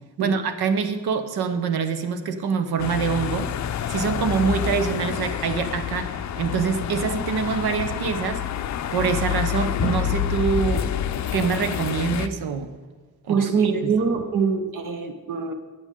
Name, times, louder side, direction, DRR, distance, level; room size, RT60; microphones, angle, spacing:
voice 1, 0.2-3.5 3.9-8.4 8.9-10.9 11.3-12.7 13.3-13.4 13.8-13.9, right 6 dB, 80° right, 9 dB, 1.0 m, -25 dB
sound 1, 2.8-12.3, left 9 dB, 50° left, 0.5 m, -28 dB
sound 2, 9.0-9.4 9.8-10.2 10.7-12.2, left 4 dB, 25° left, 0.9 m, -33 dB
voice 2, 13.3-15.5, right 5 dB, 55° right, 7 dB, 0.9 m, -23 dB
14.5 x 8.9 x 3.7 m, 1.3 s
wide cardioid pair, 145°, 37 cm